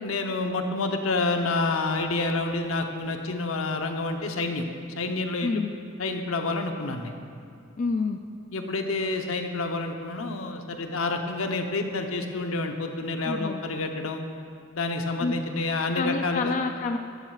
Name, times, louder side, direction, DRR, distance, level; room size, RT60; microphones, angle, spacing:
voice 1, 0.0-4.7 4.9-5.6 6.0-7.1 8.5-14.2 14.7-16.5, left 3 dB, 80° left, 4 dB, 0.9 m, -28 dB
voice 2, 5.4-5.7 7.8-8.2 13.2-13.6 15.2-15.3 15.9-17.0, left 4 dB, 40° left, 6 dB, 0.3 m, -28 dB
13.5 x 12.0 x 2.4 m, 2.3 s
head